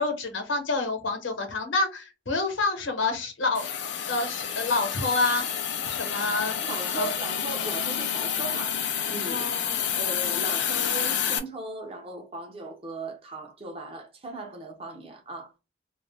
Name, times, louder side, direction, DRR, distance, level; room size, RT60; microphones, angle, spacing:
voice 1, 0.0-3.6 4.1-5.4 5.9-6.6 6.9-7.1 9.3-9.9, left 3 dB, 90° left, 0.9 m, -28 dB
Hiss, 3.5-11.4, left 8 dB, 65° left, 0.4 m, -29 dB
voice 2, 6.6-9.4 10.0-15.5, right 3 dB, 30° right, 0.6 m, -38 dB
2.5 x 2.0 x 3.3 m
head